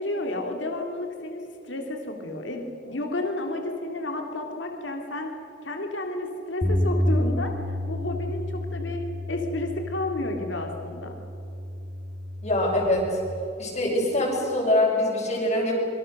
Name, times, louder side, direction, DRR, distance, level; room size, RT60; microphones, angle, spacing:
voice 1, 0.0-5.3 5.6-7.5 7.9-9.0 9.3-11.2, left 1 dB, 75° left, 3 dB, 2.5 m, -31 dB
Bass guitar, 6.6-12.9, left 1 dB, ahead, 4.9 m, -30 dB
voice 2, 12.4-13.2 13.6-15.7, left 1 dB, 35° left, -7 dB, 5.8 m, -24 dB
26.5 x 24.0 x 6.5 m, 3.0 s
head